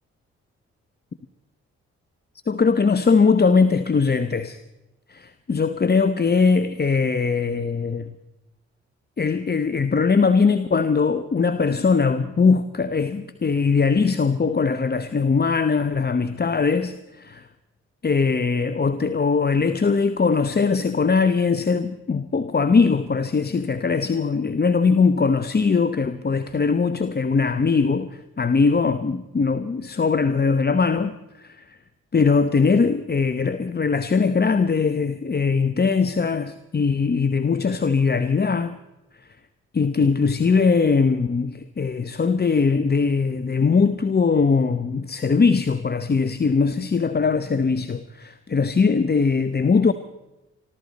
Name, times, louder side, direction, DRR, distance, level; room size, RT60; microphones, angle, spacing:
voice 1, 2.5-4.6 5.1-8.1 9.2-17.5 18.0-31.8 32.1-38.8 39.7-49.9, left 5 dB, 35° left, 1.0 m, -21 dB
26.0 x 13.5 x 4.2 m
supercardioid pair, 50°, 29 cm